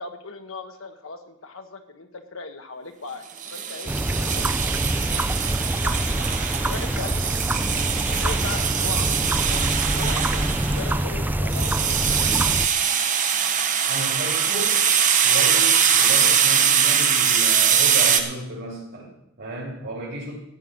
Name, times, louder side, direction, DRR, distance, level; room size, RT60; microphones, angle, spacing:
voice 1, 0.0-4.5 5.0-5.2 5.8-6.0 6.6-7.1 7.7-12.9, left 3 dB, 70° left, 6 dB, 1.2 m, -38 dB
sound 1, 3.4-18.2, right 7 dB, 40° right, 1.2 m, -22 dB
sound 2, 3.9-12.7, right 1 dB, 10° right, 0.4 m, -25 dB
voice 2, 13.8-14.9 15.2-20.3, right 1 dB, 55° right, -7 dB, 3.5 m, -33 dB
14.0 x 5.6 x 9.2 m, 0.79 s
head